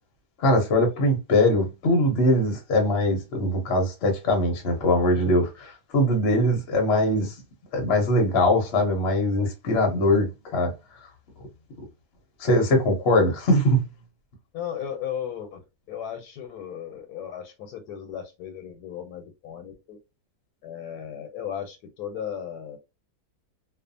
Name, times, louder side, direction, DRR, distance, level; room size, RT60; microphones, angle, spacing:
voice 1, 0.4-7.3 7.7-10.7 12.4-13.8, left 1 dB, 50° left, 0.8 m, -22 dB
voice 2, 14.5-15.6 15.9-20.0 20.6-22.8, left 9 dB, 90° left, 1.1 m, -35 dB
2.5 x 2.3 x 2.5 m
omnidirectional pair, 1.6 m